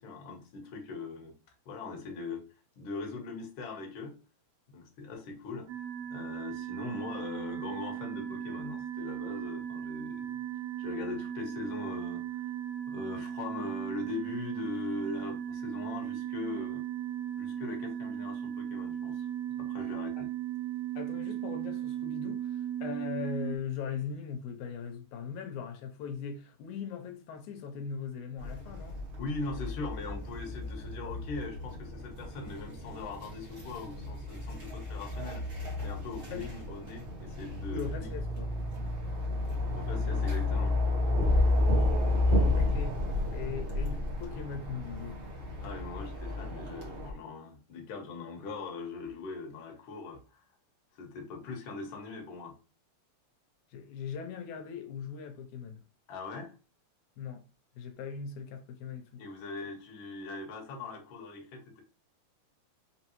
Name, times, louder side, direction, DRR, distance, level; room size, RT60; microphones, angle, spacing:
voice 1, 0.0-1.3 1.6-2.4 2.8-4.2 4.7-5.7 6.1-10.4 10.8-12.4 12.9-16.8 17.4-19.3 19.6-20.3 29.2-35.4 35.8-38.1 39.7-40.8 45.6-50.4 50.9-52.6 56.1-56.5 59.2-61.8, left 3 dB, 55° left, 1.5 m, -41 dB
sound 1, 5.7-23.6, right 10 dB, 80° right, 2.0 m, -37 dB
voice 2, 21.0-29.0 36.3-36.5 37.7-38.5 42.5-45.2 53.7-55.8 57.2-57.4 57.8-59.2, left 6 dB, 85° left, 2.1 m, -40 dB
sound 2, 28.4-47.1, left 2 dB, 45° right, 0.8 m, -31 dB
5.2 x 3.1 x 3.0 m
omnidirectional pair, 3.4 m